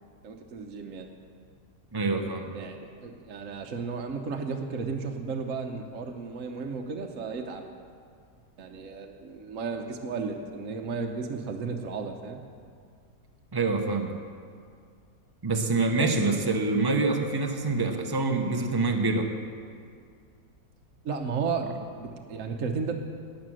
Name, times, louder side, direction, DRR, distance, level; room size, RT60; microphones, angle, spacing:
voice 1, 0.2-1.1 2.5-7.7 8.6-12.4 15.9-16.2 21.0-23.0, right 5 dB, 60° right, 3 dB, 1.2 m, -34 dB
voice 2, 1.9-2.5 13.5-14.1 15.4-19.3, right 3 dB, 20° right, 4 dB, 0.8 m, -26 dB
18.0 x 7.5 x 6.3 m, 2.2 s
omnidirectional pair, 1.7 m